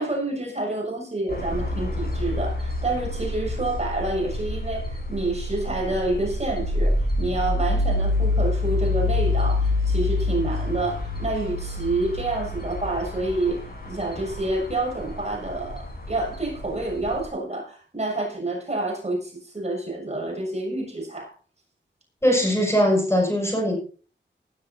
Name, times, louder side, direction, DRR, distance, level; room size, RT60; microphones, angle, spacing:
voice 1, 0.0-21.3, right 2 dB, 35° right, 6.9 m, -28 dB
sound 1, 1.3-17.3, left 2 dB, 55° left, 7.7 m, -27 dB
voice 2, 22.2-23.8, equal, 15° left, 6.2 m, -20 dB
19.5 x 11.5 x 2.7 m
wide cardioid pair, 85°, 19 cm